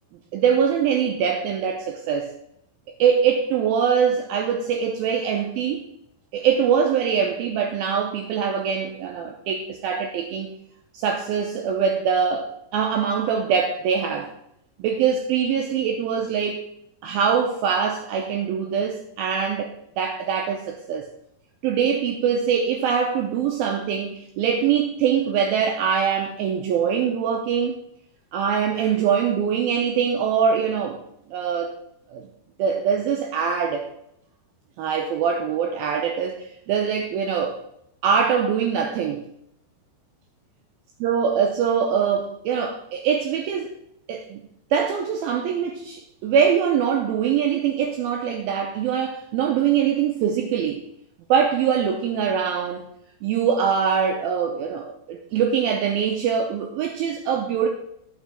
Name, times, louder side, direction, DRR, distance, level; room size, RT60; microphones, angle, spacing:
voice 1, 0.3-2.3 3.0-5.8 6.3-10.6 10.9-14.3 14.8-16.6 17.0-21.1 21.6-27.8 28.3-31.0 31.3-31.7 32.1-32.2 32.6-33.9 34.8-37.6 38.0-39.2 41.0-43.7 44.1-44.5 44.7-50.8 51.3-52.9 53.2-57.7, right 7 dB, 90° right, 3 dB, 2.1 m, -23 dB
10.5 x 5.9 x 4.3 m, 0.76 s
omnidirectional pair, 5.1 m